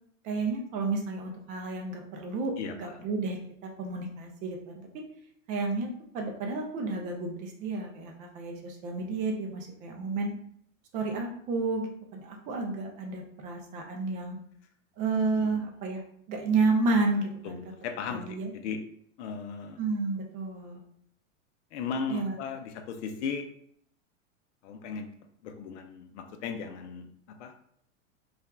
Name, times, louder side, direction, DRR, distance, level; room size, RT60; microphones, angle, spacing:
voice 1, 0.2-3.4 3.8-4.9 5.5-5.9 6.1-10.3 10.9-14.4 15.0-16.0 16.3-17.6 18.1-18.5 19.8-20.8 22.1-22.3, right 3 dB, 20° right, 2 dB, 0.3 m, -31 dB
voice 2, 2.6-3.1 15.4-15.6 17.4-18.8 19.2-19.8 21.7-23.5 24.6-25.1 25.4-27.5, left 5 dB, 60° left, 6 dB, 0.5 m, -37 dB
2.7 x 2.3 x 2.2 m, 0.68 s
hypercardioid pair, 120°, 39 cm